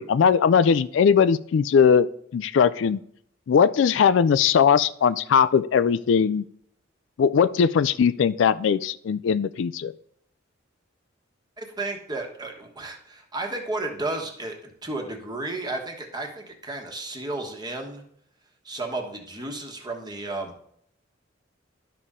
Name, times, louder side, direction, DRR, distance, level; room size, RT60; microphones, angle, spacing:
voice 1, 0.0-2.1 2.3-3.0 3.5-6.4 7.2-9.9, left 7 dB, 70° left, 16 dB, 0.3 m, -20 dB
voice 2, 11.6-18.0 18.6-20.6, right 2 dB, 20° right, 2 dB, 1.3 m, -33 dB
12.0 x 5.5 x 3.7 m, 0.67 s
head